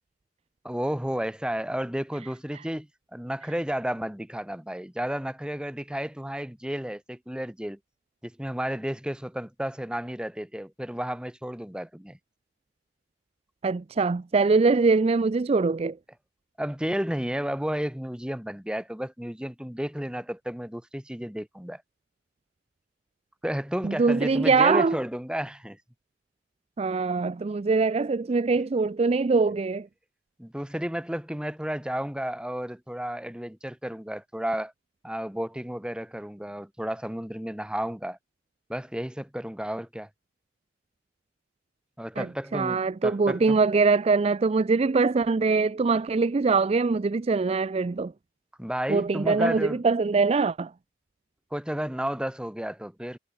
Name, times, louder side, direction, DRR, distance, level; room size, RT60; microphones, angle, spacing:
voice 1, 0.6-7.8 8.2-12.2 16.6-21.8 23.4-25.8 30.4-34.7 35.0-38.2 38.7-40.1 42.0-43.6 48.6-49.8 51.5-53.2, equal, 5° right, 1.2 m, -32 dB
voice 2, 13.6-16.0 23.8-25.0 26.8-29.9 42.2-42.3 42.5-48.1 48.9-50.7, right 4 dB, 35° right, 0.4 m, -23 dB
head